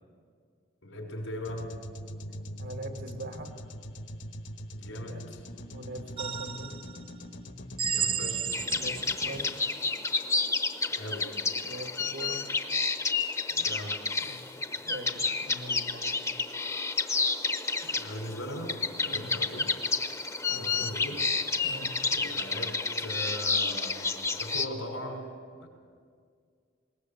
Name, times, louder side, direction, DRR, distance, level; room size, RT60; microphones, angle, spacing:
voice 1, 0.8-1.7 4.8-5.4 7.8-8.6 10.9-11.4 13.5-14.8 17.8-19.7 20.5-21.2 22.1-25.3 25.6-25.7, left 1 dB, 90° left, 2 dB, 5.2 m, -40 dB
sound 1, 1.4-13.4, left 1 dB, 65° left, 1.4 m, -43 dB
voice 2, 2.6-3.5 4.9-5.2 5.7-6.7 8.7-9.6 11.6-12.4 14.2-15.1 15.4-16.2 19.1-19.3 20.5-20.9 21.6-21.9, right 1 dB, 75° right, 4 dB, 2.5 m, -42 dB
sound 2, 6.2-7.0 7.8-9.2, right 7 dB, 30° right, 0.5 m, -32 dB
sound 3, 8.5-24.7, left 4 dB, 15° left, 0.8 m, -30 dB
20.0 x 19.0 x 8.4 m, 2.1 s
head